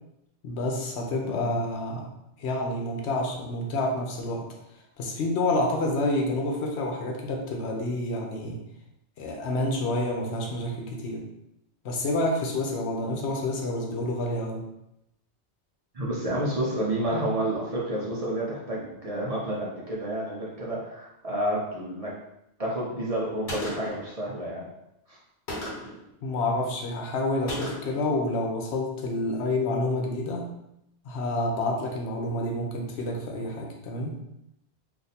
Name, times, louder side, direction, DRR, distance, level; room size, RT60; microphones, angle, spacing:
voice 1, 0.4-2.1 2.4-4.5 5.0-8.6 9.2-11.2 11.8-14.6 26.2-30.5 31.0-34.1, left 2 dB, 80° left, 1 dB, 0.9 m, -28 dB
voice 2, 15.9-22.2 22.6-24.7 25.1-25.2, right 1 dB, 45° right, -4 dB, 0.6 m, -30 dB
Gunshot gunfire, 23.5-24.1 25.5-26.0 27.5-28.0, left 1 dB, 50° left, 1.2 m, -34 dB
2.6 x 2.5 x 4.1 m, 0.84 s
omnidirectional pair, 1.1 m